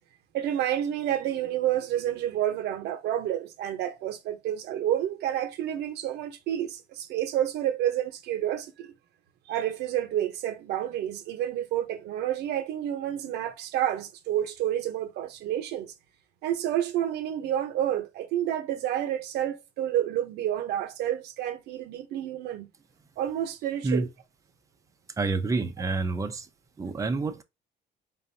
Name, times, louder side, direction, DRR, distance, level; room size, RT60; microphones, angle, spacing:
voice 1, 0.3-8.9 9.5-15.9 16.4-22.7 23.2-24.1, right 11 dB, 80° right, 0.9 m, -29 dB
voice 2, 25.2-26.5 26.8-27.4, right 3 dB, 20° right, 0.6 m, -28 dB
3.9 x 3.6 x 2.7 m
cardioid pair, 110°, 17 cm